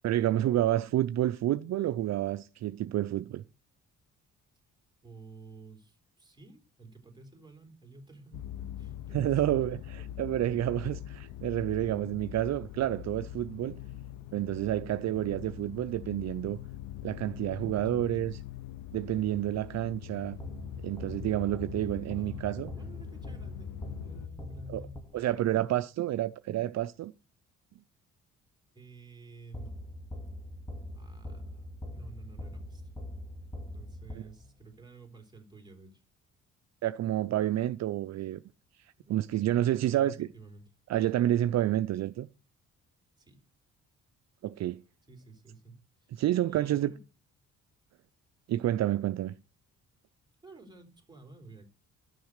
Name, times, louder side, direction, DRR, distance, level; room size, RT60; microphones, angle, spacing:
voice 1, 0.0-3.4 9.1-9.8 10.2-13.8 14.3-16.6 17.0-18.4 18.9-20.4 20.8-22.7 24.7-24.8 25.1-27.1 36.8-38.4 39.1-40.3 40.9-42.3 44.4-44.8 46.1-46.9 48.5-49.3, right 13 dB, 60° right, 0.5 m, -29 dB
voice 2, 5.0-10.1 17.5-18.2 22.1-25.8 28.7-29.8 30.9-32.9 33.7-36.0 39.0-39.3 39.6-40.6 43.2-43.4 45.1-46.2 46.5-47.0 50.4-51.7, right 3 dB, 15° right, 3.5 m, -52 dB
sound 1, 8.3-24.3, left 12 dB, 85° left, 0.6 m, -43 dB
sound 2, 20.4-25.5 29.5-34.7, left 1 dB, 10° left, 2.1 m, -42 dB
12.5 x 6.4 x 6.5 m
cardioid pair, 90°, 30 cm